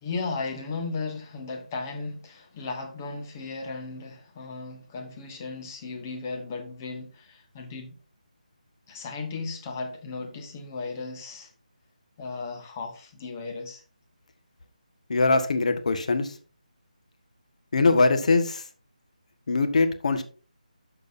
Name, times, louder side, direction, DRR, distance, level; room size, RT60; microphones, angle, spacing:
voice 1, 0.0-8.0 8.9-11.5 12.2-13.8, left 4 dB, 20° left, 1.5 m, -35 dB
voice 2, 15.1-16.4 17.7-18.6 19.5-20.2, left 3 dB, 55° left, 1.5 m, -22 dB
12.5 x 6.6 x 2.7 m
figure-of-eight pair, 165°, 4 cm